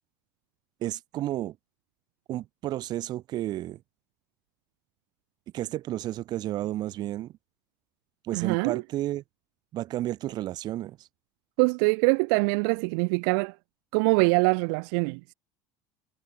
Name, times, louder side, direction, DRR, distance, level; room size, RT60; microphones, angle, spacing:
voice 1, 0.8-1.6 2.3-3.8 5.5-7.3 8.2-9.2 9.7-11.1, right 14 dB, 45° right, 6.2 m, -32 dB
voice 2, 8.3-8.8 11.6-13.5 13.9-15.2, right 38 dB, 75° right, 2.8 m, -24 dB
cardioid pair, 155°, 10 cm